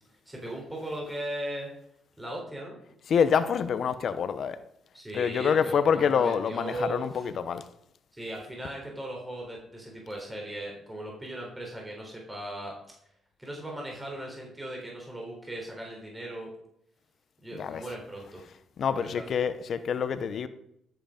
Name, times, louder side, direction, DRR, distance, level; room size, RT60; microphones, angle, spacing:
voice 1, 0.3-1.7 2.2-2.8 4.9-7.3 8.1-12.8 13.4-16.5 17.4-18.4 18.9-19.2, right 1 dB, 15° right, 4.0 m, -38 dB
voice 2, 3.1-4.6 5.1-7.6 17.6-17.8 18.8-20.5, left 7 dB, 60° left, 0.8 m, -26 dB
13.0 x 7.9 x 5.1 m
cardioid pair, 90°, 0 cm